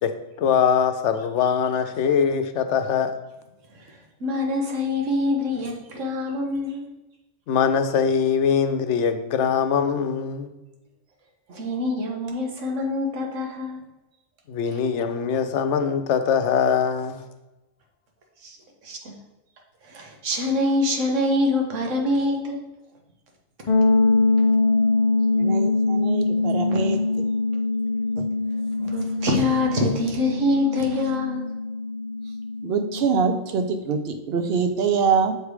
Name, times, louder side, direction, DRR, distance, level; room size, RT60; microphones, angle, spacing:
voice 1, 0.0-3.2 7.5-10.5 14.5-17.2, left 7 dB, 75° left, 8 dB, 0.9 m, -22 dB
voice 2, 3.7-6.9 11.5-13.8 14.7-14.8 18.4-18.6 18.8-19.2 19.8-22.7 24.2-24.3 26.7-26.8 28.8-31.5, left 2 dB, 90° right, 1 dB, 1.4 m, -25 dB
sound 1, 23.7-33.4, left 3 dB, 45° left, 0.5 m, -23 dB
voice 3, 25.3-27.0 28.2-28.3 32.6-35.3, right 5 dB, 60° right, 7 dB, 0.8 m, -24 dB
6.5 x 3.4 x 4.7 m, 1.0 s
omnidirectional pair, 1.2 m